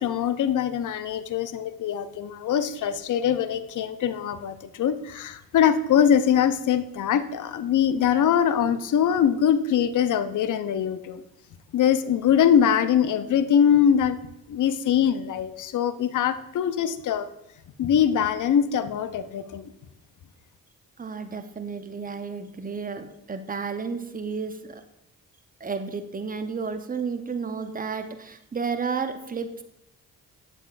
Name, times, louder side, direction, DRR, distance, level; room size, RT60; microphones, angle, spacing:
voice 1, 0.0-11.2 11.7-14.2 14.5-17.3 17.8-19.6, left 8 dB, 50° left, 12 dB, 0.5 m, -23 dB
voice 2, 21.0-24.8 25.6-29.6, right 5 dB, 20° right, 8 dB, 0.6 m, -32 dB
7.4 x 5.3 x 2.4 m, 0.84 s
hypercardioid pair, 40°, 41 cm